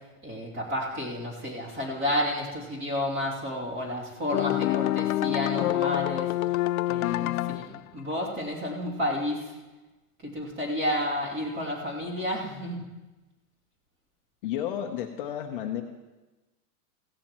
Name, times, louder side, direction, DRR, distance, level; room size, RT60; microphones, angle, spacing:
voice 1, 0.2-6.3 6.9-9.5 10.2-12.8, left 1 dB, 20° right, -4 dB, 2.8 m, -31 dB
sound 1, 4.3-7.8, left 16 dB, 75° left, 0.5 m, -26 dB
voice 2, 14.4-15.8, left 10 dB, 40° left, 3 dB, 0.8 m, -32 dB
16.5 x 16.0 x 3.0 m, 1.1 s
supercardioid pair, 180°, 43 cm